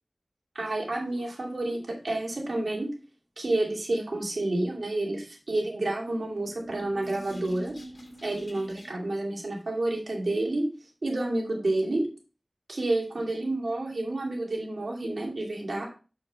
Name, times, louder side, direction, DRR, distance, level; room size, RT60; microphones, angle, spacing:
voice 1, 0.5-2.9 3.4-7.8 8.2-10.7 11.0-12.1 12.7-15.9, right 2 dB, 80° right, -1 dB, 2.5 m, -29 dB
sound 1, 6.1-9.2, right 1 dB, 65° left, 2.0 m, -45 dB
7.3 x 6.4 x 3.3 m, 0.34 s
wide cardioid pair, 45°, 0 cm